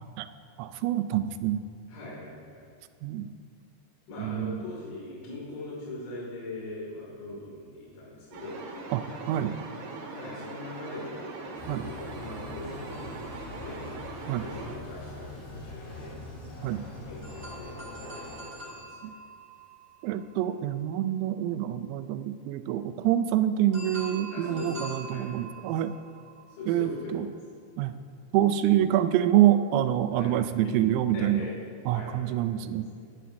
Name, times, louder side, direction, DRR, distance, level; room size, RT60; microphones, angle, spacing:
voice 1, 0.6-1.6 3.0-3.3 4.2-4.6 8.9-9.6 11.7-11.9 14.3-14.4 16.6-16.9 19.0-19.1 20.0-25.9 26.7-27.3 27.8-28.0 28.3-31.5 31.9-32.9, right 12 dB, 85° right, 11 dB, 3.2 m, -26 dB
voice 2, 1.9-2.7 4.1-8.6 10.1-13.8 14.2-16.1 16.8-19.1 24.3-25.3 26.5-27.3 30.2-30.3 31.1-31.5 31.9-32.3 32.9-33.0, left 2 dB, 85° left, -6 dB, 5.1 m, -41 dB
sound 1, 8.3-14.8, right 3 dB, 65° right, 3.0 m, -41 dB
sound 2, 11.6-18.4, left 2 dB, 55° left, 5.3 m, -43 dB
sound 3, 12.9-14.6 17.2-21.1 23.7-27.2, right 2 dB, 25° right, 2.8 m, -46 dB
19.5 x 11.5 x 2.7 m, 2.2 s
omnidirectional pair, 5.9 m